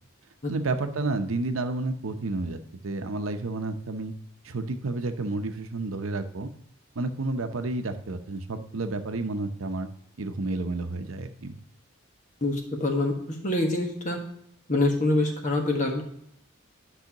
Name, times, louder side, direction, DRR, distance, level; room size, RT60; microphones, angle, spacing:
voice 1, 0.5-4.1 4.4-6.5 7.0-9.9 10.2-11.6, right 2 dB, 75° right, 8 dB, 0.7 m, -30 dB
voice 2, 12.4-14.2 14.7-16.0, left 2 dB, 35° left, 1 dB, 1.4 m, -25 dB
10.5 x 5.6 x 2.9 m, 0.72 s
head